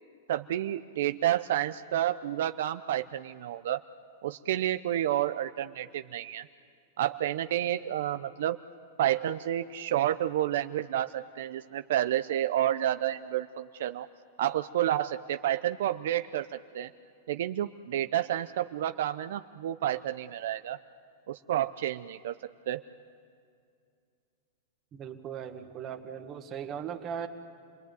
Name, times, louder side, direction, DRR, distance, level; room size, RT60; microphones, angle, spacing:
voice 1, 0.3-3.8 4.2-6.5 7.0-8.6 9.0-14.1 14.4-16.9 17.3-20.8 21.3-22.3 22.7-22.8, right 12 dB, 65° right, 10 dB, 0.6 m, -30 dB
voice 2, 24.9-27.3, right 8 dB, 25° right, 5 dB, 1.7 m, -38 dB
27.5 x 20.0 x 9.3 m, 2.4 s
supercardioid pair, 155°, 0 cm